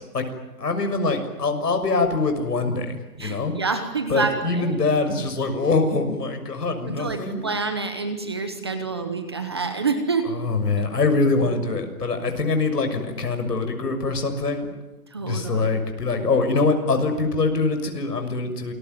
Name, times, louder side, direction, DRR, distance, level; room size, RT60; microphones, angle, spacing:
voice 1, 0.6-3.5 4.1-7.4 10.3-14.7 15.2-18.7, left 3 dB, 75° left, 7 dB, 6.7 m, -24 dB
voice 2, 3.2-4.7 6.8-10.3 15.1-15.7, right 4 dB, 15° right, 8 dB, 1.0 m, -27 dB
28.5 x 21.0 x 9.3 m, 1.1 s
hypercardioid pair, 175°, 48 cm